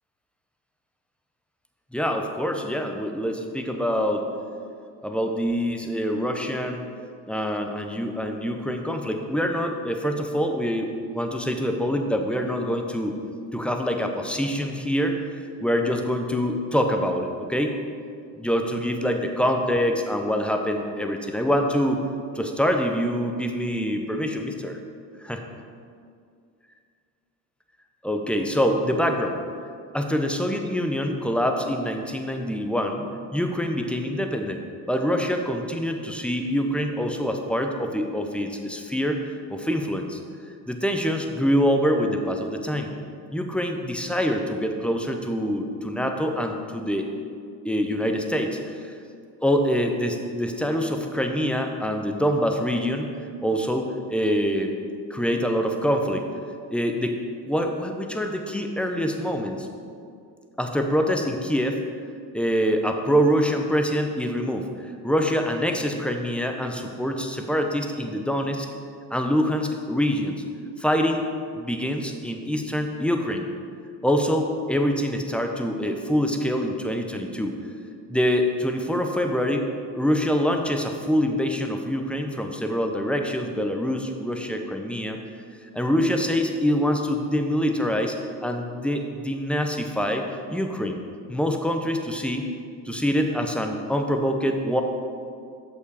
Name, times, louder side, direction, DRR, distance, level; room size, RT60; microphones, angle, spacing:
voice 1, 1.9-4.3 5.0-6.8 7.3-13.2 13.5-15.2 15.6-17.7 18.4-22.0 22.3-24.8 25.2-25.4 28.0-29.4 29.9-33.0 33.3-34.6 34.9-39.2 39.5-40.2 40.7-42.9 43.3-47.1 47.6-48.9 49.4-53.1 53.4-54.7 55.1-56.3 56.7-57.2 57.5-59.7 60.6-61.8 62.3-64.7 65.0-68.7 69.1-70.4 70.8-71.3 71.6-73.5 74.0-77.6 78.1-79.7 79.9-85.2 85.7-88.2 88.4-90.2 90.5-91.0 91.3-92.5 92.9-94.8, equal, 5° left, 4 dB, 0.7 m, -25 dB
6.5 x 5.6 x 4.8 m, 2.3 s
supercardioid pair, 85°, 40 cm